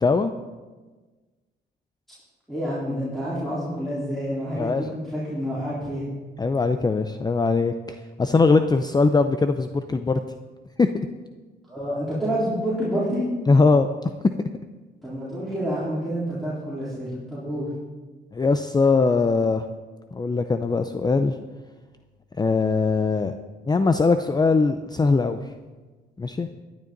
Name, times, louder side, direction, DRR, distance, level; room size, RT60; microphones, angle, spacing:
voice 1, 0.0-0.3 4.5-4.9 6.4-10.2 13.5-13.9 18.3-19.7 20.1-21.4 22.4-23.3 23.7-25.5 26.2-26.5, left 4 dB, 20° left, 9 dB, 0.5 m, -21 dB
voice 2, 2.5-6.0 11.7-13.2 15.0-17.7, equal, ahead, -10 dB, 4.1 m, -28 dB
15.5 x 10.5 x 4.0 m, 1.3 s
cardioid pair, 90°, 20 cm